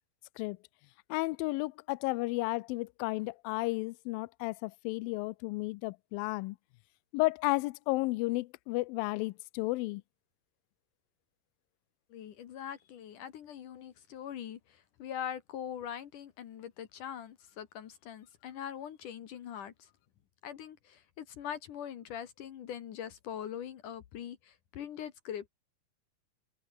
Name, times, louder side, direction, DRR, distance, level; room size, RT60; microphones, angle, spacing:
voice 1, 1.1-6.6 7.1-10.0, left 22 dB, 85° left, 2.1 m, -33 dB
voice 2, 12.1-19.7 20.4-25.5, left 9 dB, 60° left, 2.7 m, -42 dB
omnidirectional pair, 4.6 m